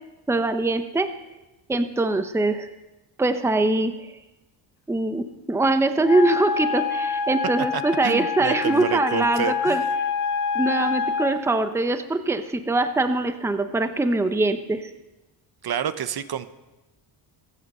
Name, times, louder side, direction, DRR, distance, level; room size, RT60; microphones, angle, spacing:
voice 1, 0.3-1.1 1.7-2.7 3.2-4.1 4.9-9.8 10.5-14.9, right 2 dB, 5° right, 9 dB, 0.7 m, -23 dB
Wind instrument woodwind instrument, 6.0-11.4, left 6 dB, 60° left, 1.3 m, -26 dB
voice 2, 7.7-9.9 15.6-16.5, right 8 dB, 55° right, 13 dB, 0.8 m, -29 dB
23.0 x 8.0 x 5.5 m, 1.1 s
cardioid pair, 110°, 46 cm